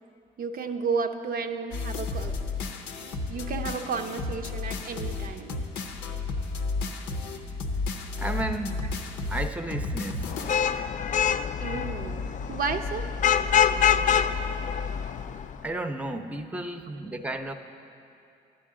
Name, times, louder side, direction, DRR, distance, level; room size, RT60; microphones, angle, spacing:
voice 1, 0.4-2.5 3.3-5.7 11.6-13.1, right 5 dB, 55° right, 5 dB, 0.5 m, -32 dB
sound 1, 1.7-10.8, left 3 dB, 85° left, 0.7 m, -32 dB
voice 2, 8.2-8.8 9.1-10.3 15.6-17.5, right 1 dB, 10° right, 7 dB, 0.6 m, -33 dB
Vehicle horn car horn honking / Traffic noise roadway noise, 10.3-15.5, left 8 dB, 45° left, 0.4 m, -25 dB
10.5 x 9.5 x 3.7 m, 2.6 s
supercardioid pair, 60°, 18 cm